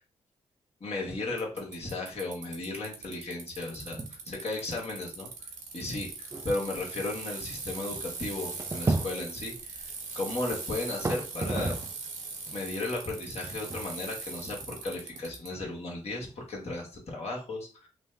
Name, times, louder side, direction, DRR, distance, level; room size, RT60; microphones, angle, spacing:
voice 1, 0.8-5.3 5.7-11.8 12.5-17.9, left 2 dB, 55° left, -2 dB, 1.4 m, -35 dB
Bicycle, 1.4-15.5, right 4 dB, 75° right, 0.9 m, -40 dB
sound 1, 3.8-4.3 4.7-4.8 5.4-5.5 6.0-12.1 12.4-16.7, right 2 dB, 20° right, 0.3 m, -36 dB
3.2 x 2.0 x 3.3 m, 0.35 s
cardioid pair, 55°, 13 cm